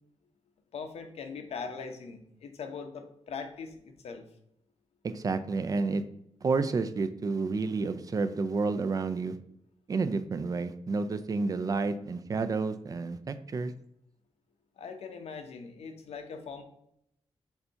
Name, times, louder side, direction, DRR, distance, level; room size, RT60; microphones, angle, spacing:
voice 1, 0.7-4.3 14.8-16.6, left 5 dB, 75° left, 6 dB, 0.9 m, -41 dB
voice 2, 5.0-6.0 6.4-9.4 9.9-13.7, right 4 dB, 35° right, 11 dB, 0.4 m, -30 dB
6.8 x 2.7 x 5.5 m, 0.75 s
wide cardioid pair, 180°, 11 cm